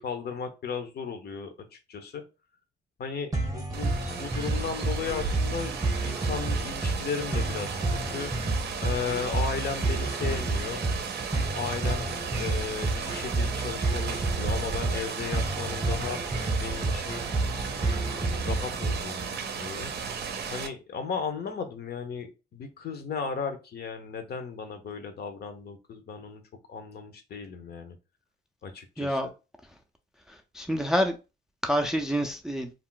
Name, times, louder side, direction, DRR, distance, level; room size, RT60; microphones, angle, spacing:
voice 1, 0.0-2.2 3.0-5.7 6.0-7.8 8.1-8.3 8.8-10.8 11.5-16.2 16.6-17.2 17.8-20.0 20.5-26.4 26.7-28.0 28.6-29.2, left 6 dB, 55° left, 0.6 m, -35 dB
sound 1, 3.3-19.3, right 2 dB, 20° right, 0.8 m, -30 dB
Rain, 3.7-20.7, right 6 dB, 55° right, 0.5 m, -35 dB
voice 2, 29.0-29.3 30.3-31.1 31.6-32.7, equal, 5° right, 0.4 m, -27 dB
2.4 x 2.0 x 3.7 m
cardioid pair, 90°, 20 cm